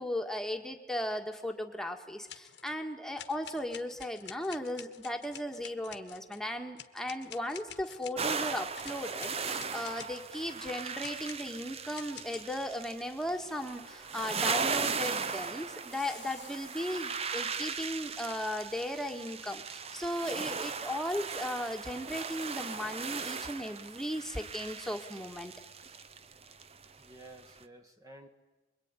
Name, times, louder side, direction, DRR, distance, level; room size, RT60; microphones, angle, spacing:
voice 1, 0.0-25.5, left 1 dB, 5° left, 3 dB, 1.8 m, -36 dB
sound 1, 2.3-2.8 3.2-6.4 6.8-10.3 11.0-13.0 15.9-17.2 18.3-18.4, left 10 dB, 75° left, 1.5 m, -50 dB
sound 2, 8.2-27.1 27.4-27.6, right 5 dB, 35° right, 0.8 m, -38 dB
voice 2, 27.0-28.3, right 1 dB, 20° right, 4 dB, 1.6 m, -52 dB
26.0 x 22.5 x 9.9 m, 1.2 s
head